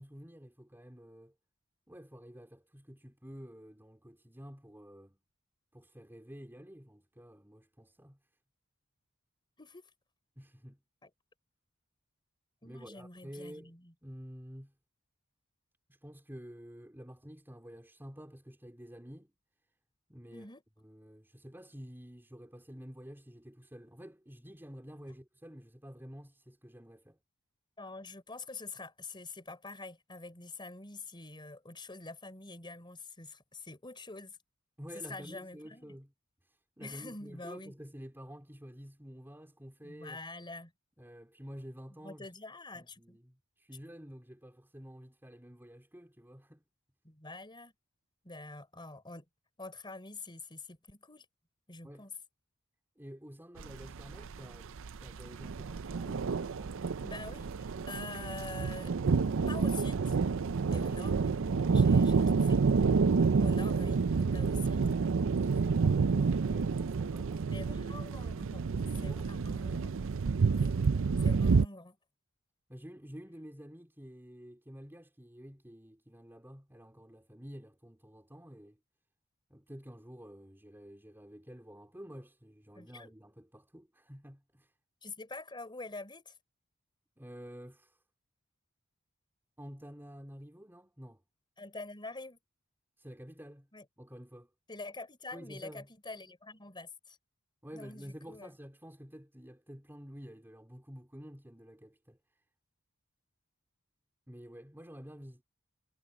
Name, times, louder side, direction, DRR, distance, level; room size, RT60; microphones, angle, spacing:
voice 1, 0.0-1.3 1.9-5.2 5.7-8.2 10.4-10.8 12.6-13.7 14.0-14.7 15.9-19.4 20.1-20.5 20.8-27.2 34.8-36.1 36.4-40.2 41.0-42.3 42.7-46.6 51.8-52.1 53.0-56.8 65.3-68.1 68.8-69.5 72.7-78.8 79.5-84.7 87.2-88.0 89.6-91.2 93.0-93.7 94.0-94.5 95.3-95.9 97.6-102.4 104.3-105.4, equal, 10° right, 4.0 m, -50 dB
voice 2, 9.6-9.9 11.0-11.1 12.6-13.9 20.3-20.6 27.8-34.4 35.0-36.0 36.8-37.7 39.8-40.7 42.0-43.2 47.0-47.7 48.2-49.3 49.6-51.3 51.7-52.1 57.0-59.0 59.5-60.2 60.7-61.4 61.7-62.6 63.4-64.9 67.5-68.7 69.0-69.9 70.5-70.7 71.2-72.0 82.8-83.1 85.0-86.4 91.6-92.4 93.7-93.9 94.7-97.2 97.7-98.5, left 3 dB, 20° left, 4.0 m, -46 dB
sound 1, 53.6-71.6, right 5 dB, 65° right, 0.5 m, -29 dB
head